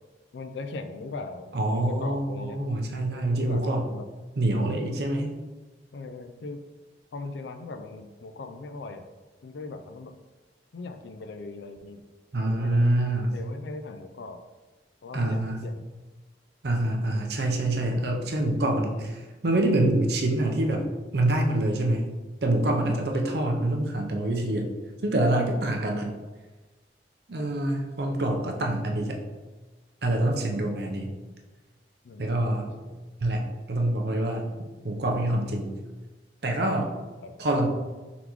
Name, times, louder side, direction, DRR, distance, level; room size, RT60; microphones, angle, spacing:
voice 1, 0.3-2.6 3.3-4.1 5.9-6.6 7.1-9.1 9.4-10.1 10.7-12.0 12.4-12.8 13.3-14.4 15.0-15.8 23.0-23.4 25.6-25.9 32.0-33.0 37.2-37.3, left 3 dB, 75° left, 7 dB, 0.4 m, -40 dB
voice 2, 1.5-3.8 4.4-5.3 12.3-13.4 15.1-15.6 16.6-20.9 21.1-22.0 22.4-24.7 25.0-26.1 27.3-29.2 30.0-31.1 32.2-32.7 33.2-34.4 34.8-35.7 36.4-36.9 37.4-37.7, right 1 dB, 60° right, 2 dB, 0.6 m, -26 dB
3.9 x 3.4 x 3.0 m, 1.2 s
head